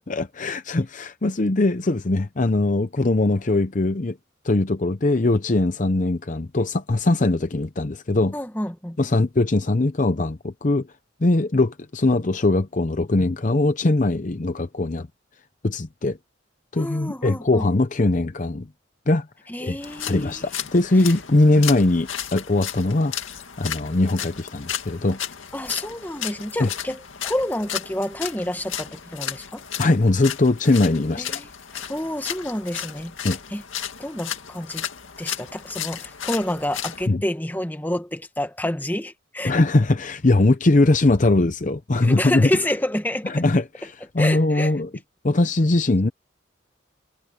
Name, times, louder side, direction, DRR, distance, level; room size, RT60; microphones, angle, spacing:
voice 1, 0.1-4.2 4.4-8.4 9.0-10.9 11.2-15.1 15.6-16.2 16.7-18.7 19.1-19.3 19.6-19.8 20.1-25.2 26.6-26.7 29.8-31.4 33.2-33.4 37.1-37.2 39.4-42.5 43.2-44.9 45.2-46.1, left 2 dB, 40° left, 0.7 m, -21 dB
voice 2, 8.3-9.0 16.8-17.7 19.5-20.4 25.5-29.6 31.2-33.1 33.5-33.6 34.0-34.9 35.2-39.5 42.0-43.4 44.2-44.7, left 1 dB, 10° left, 1.4 m, -29 dB
sound 1, 19.8-37.1, left 9 dB, 75° left, 2.2 m, -34 dB
head